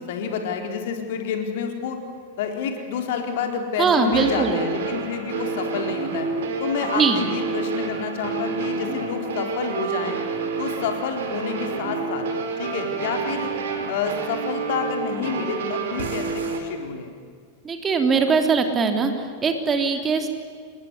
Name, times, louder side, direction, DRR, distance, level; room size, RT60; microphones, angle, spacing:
voice 1, 0.0-2.0 2.4-6.3 6.6-10.2 10.6-12.3 12.6-13.5 13.9-17.1, left 6 dB, 55° left, 4 dB, 3.9 m, -29 dB
sound 1, 2.8-2.9 4.1-16.6, right 5 dB, 60° right, 4.3 m, -28 dB
voice 2, 3.8-4.6 6.9-7.2 17.6-20.3, right 5 dB, 20° right, 5 dB, 3.2 m, -21 dB
28.5 x 20.5 x 10.0 m, 2.2 s
figure-of-eight pair, 90°, 0 cm